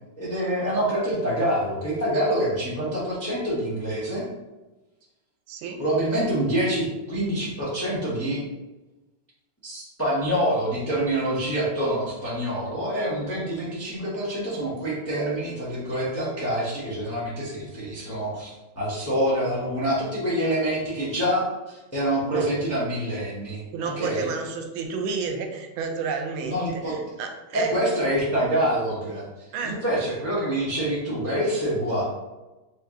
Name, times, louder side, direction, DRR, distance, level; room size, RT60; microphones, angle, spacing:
voice 1, 0.2-4.2 5.8-8.4 9.6-23.6 24.0-24.3 26.4-27.0 27.5-29.2 29.6-32.0, right 1 dB, 15° left, -7 dB, 0.5 m, -26 dB
voice 2, 5.5-5.8 22.3-22.5 23.7-27.7 29.5-29.8, right 5 dB, 90° right, 4 dB, 1.4 m, -31 dB
3.7 x 2.8 x 3.6 m, 1.1 s
omnidirectional pair, 2.2 m